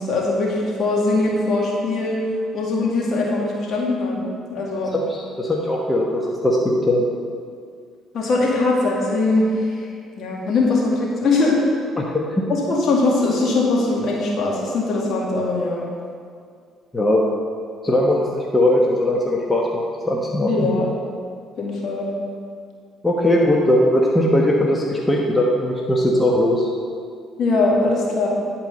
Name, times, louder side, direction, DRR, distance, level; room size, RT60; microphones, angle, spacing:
voice 1, 0.0-2.2 2.5-4.2 4.5-4.9 8.1-9.8 10.2-11.6 12.7-15.8 20.5-20.9 21.6-22.1 27.4-28.3, left 3 dB, 55° left, -3 dB, 2.1 m, -21 dB
voice 2, 4.9-7.1 12.0-12.4 16.9-17.3 17.8-20.7 23.0-26.7, left 1 dB, 20° left, -2 dB, 1.1 m, -19 dB
10.5 x 4.5 x 5.3 m, 2.2 s
supercardioid pair, 60°, 0 cm